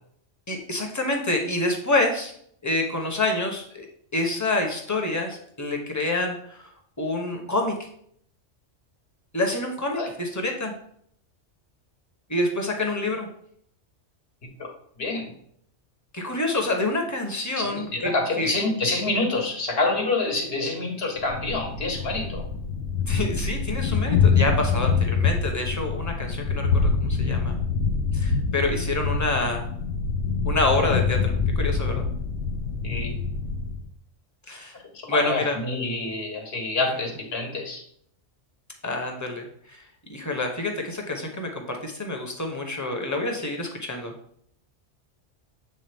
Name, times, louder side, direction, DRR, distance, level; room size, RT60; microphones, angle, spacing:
voice 1, 0.5-2.3 2.6-3.9 4.1-6.6 7.0-7.8 9.3-10.7 12.3-13.3 16.1-18.5 23.1-27.6 28.1-29.6 30.4-32.1 34.5-34.8 35.1-35.6 38.8-39.8 40.1-44.1, left 2 dB, 15° left, 3 dB, 0.8 m, -27 dB
voice 2, 15.0-15.3 17.5-22.5 32.8-33.1 34.9-37.8, left 2 dB, 60° left, 2 dB, 1.4 m, -27 dB
Thunder, 21.2-33.9, left 5 dB, 80° left, 0.9 m, -25 dB
7.7 x 3.6 x 3.5 m, 0.66 s
omnidirectional pair, 1.2 m